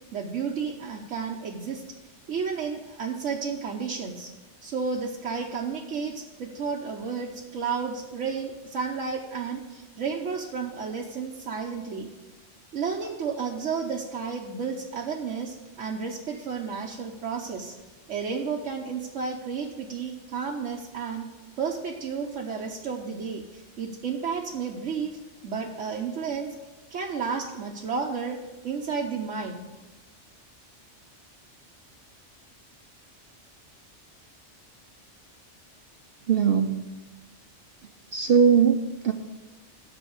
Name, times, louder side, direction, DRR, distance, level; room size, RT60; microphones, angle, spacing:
voice 1, 0.1-1.8 2.3-4.3 4.6-12.1 12.7-17.7 18.1-21.2 21.6-26.5 26.9-29.6, right 5 dB, 80° right, -1 dB, 1.2 m, -32 dB
voice 2, 36.3-36.8 38.1-39.1, right 7 dB, 60° right, 4 dB, 0.8 m, -20 dB
8.0 x 6.1 x 7.9 m, 1.2 s
omnidirectional pair, 1.2 m